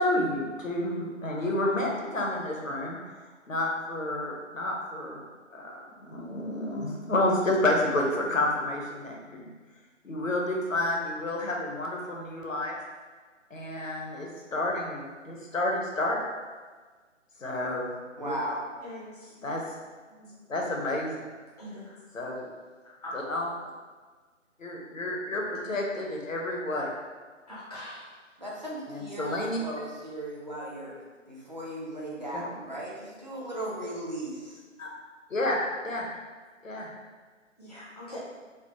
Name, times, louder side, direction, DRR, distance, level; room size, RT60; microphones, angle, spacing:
voice 1, 0.0-3.0 3.5-5.2 5.5-9.5 10.0-12.8 13.5-16.3 17.4-17.9 18.2-18.4 19.4-19.6 20.5-21.2 22.1-22.5 23.1-23.5 24.6-26.9 28.9-29.6 32.3-32.4 34.8-34.9 35.3-36.1 36.6-36.9, left 1 dB, 85° left, -1 dB, 0.8 m, -30 dB
voice 2, 18.2-18.6 28.4-30.9 31.3-34.6, right 1 dB, 35° right, -5 dB, 0.5 m, -36 dB
voice 3, 18.8-19.3 20.2-20.4 21.6-22.0 23.0-23.1 27.5-28.1 37.6-38.2, left 1 dB, 30° left, -8 dB, 0.4 m, -42 dB
3.3 x 2.1 x 2.8 m, 1.5 s
figure-of-eight pair, 150°, 38 cm